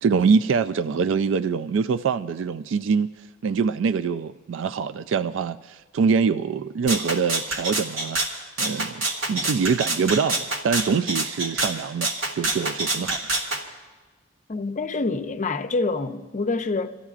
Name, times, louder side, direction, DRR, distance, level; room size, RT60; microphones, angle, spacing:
voice 1, 0.0-3.1 3.4-8.2 8.6-9.0 9.3-12.1 12.3-13.2, right 5 dB, 70° right, 0.3 m, -24 dB
Rattle (instrument), 6.9-13.6, right 2 dB, 85° right, 2.1 m, -27 dB
voice 2, 14.5-17.0, left 3 dB, 40° left, 0.6 m, -26 dB
29.5 x 14.0 x 2.4 m
head